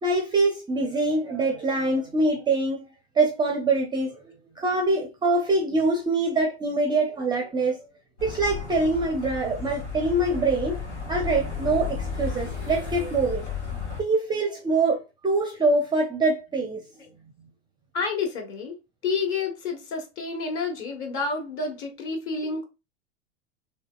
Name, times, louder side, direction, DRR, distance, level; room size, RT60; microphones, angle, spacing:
voice 1, 0.0-2.9 3.2-7.8 8.2-10.8 11.1-13.4 14.0-16.8, right 2 dB, 15° right, 0.5 m, -24 dB
sound 1, 8.2-14.0, left 5 dB, 85° left, 1.4 m, -33 dB
voice 2, 17.9-18.8 19.0-22.6, left 4 dB, 40° left, 1.4 m, -29 dB
3.9 x 3.1 x 2.3 m
figure-of-eight pair, 85°, 34 cm